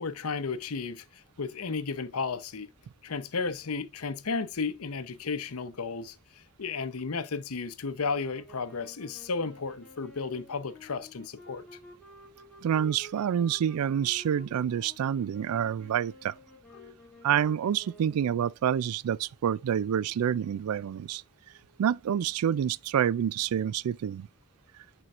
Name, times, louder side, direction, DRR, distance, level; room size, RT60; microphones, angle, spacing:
voice 1, 0.0-2.7 3.0-11.6 16.7-16.9, left 4 dB, 80° left, 0.7 m, -34 dB
sound 1, 8.0-18.3, right 1 dB, 5° left, 2.4 m, -52 dB
voice 2, 12.6-16.3 17.2-21.2 21.8-24.3, right 9 dB, 90° right, 0.3 m, -28 dB
10.5 x 4.5 x 2.4 m
head